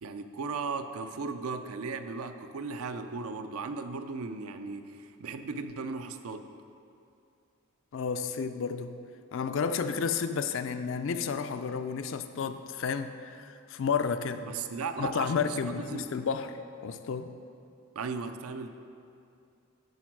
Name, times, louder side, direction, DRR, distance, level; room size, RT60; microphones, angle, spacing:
voice 1, 0.0-6.5 14.4-16.1 18.0-18.7, right 4 dB, 75° right, 9 dB, 0.5 m, -36 dB
voice 2, 7.9-9.0 9.3-14.4 15.0-17.3, left 6 dB, 60° left, 10 dB, 0.3 m, -31 dB
12.0 x 4.4 x 4.6 m, 2.6 s
head